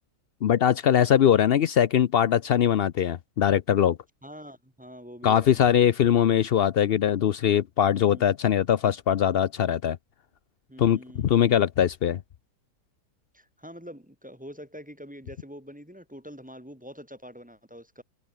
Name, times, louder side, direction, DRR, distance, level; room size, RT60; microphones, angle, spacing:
voice 1, 0.4-4.0 5.2-10.0 10.8-12.2, left 9 dB, 90° left, 0.5 m, -21 dB
voice 2, 4.2-5.5 7.9-8.2 10.7-11.4 13.3-18.0, equal, 5° right, 1.9 m, -45 dB
omnidirectional pair, 1.8 m